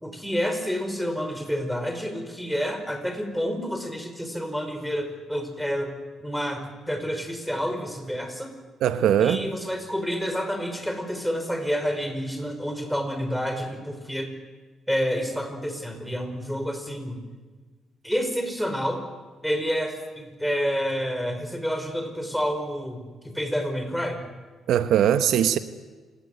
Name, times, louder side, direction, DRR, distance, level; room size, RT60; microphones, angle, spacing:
voice 1, 0.0-5.9 6.2-8.5 9.2-14.3 14.9-17.2 18.0-19.0 19.4-24.2, equal, ahead, 6 dB, 5.2 m, -29 dB
voice 2, 8.8-9.5 24.7-25.6, right 9 dB, 80° right, 11 dB, 1.1 m, -20 dB
27.5 x 18.0 x 9.7 m, 1.4 s
cardioid pair, 90°, 0 cm